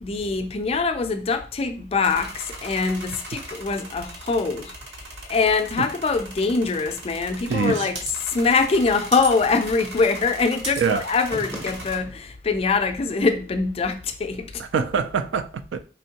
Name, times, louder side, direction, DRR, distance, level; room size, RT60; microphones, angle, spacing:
voice 1, 0.0-4.7 5.3-8.0 8.2-14.6, left 4 dB, 30° left, 0.4 m, -23 dB
sound 1, 2.0-12.0, right 2 dB, 65° right, 1.0 m, -38 dB
sound 2, 7.5-8.2 11.3-12.3, right 1 dB, 15° right, 0.6 m, -37 dB
voice 2, 7.5-7.9 10.8-11.0 14.6-15.8, right 6 dB, 80° right, 0.4 m, -24 dB
4.3 x 3.1 x 2.8 m
head